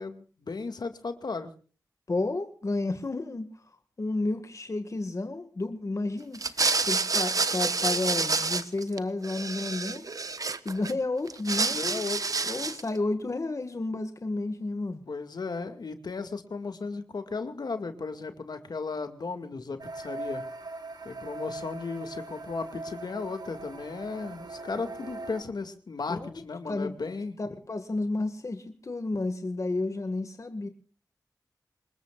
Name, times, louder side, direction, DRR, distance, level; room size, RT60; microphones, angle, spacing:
voice 1, 0.0-1.5 11.7-12.4 15.1-20.4 21.0-27.3, left 4 dB, 70° left, 8 dB, 2.2 m, -35 dB
voice 2, 2.1-3.5 4.0-6.4 6.8-10.1 10.6-12.0 12.4-15.0 26.1-26.3 26.7-26.9 27.4-30.7, left 2 dB, 45° left, 8 dB, 1.9 m, -31 dB
sound 1, 6.3-9.0 9.2-10.9 11.3-12.9, right 4 dB, 55° right, 1.1 m, -28 dB
sound 2, 19.8-25.4, right 2 dB, 70° right, 2.9 m, -40 dB
27.0 x 21.0 x 2.5 m, 0.39 s
wide cardioid pair, 90°, 7 cm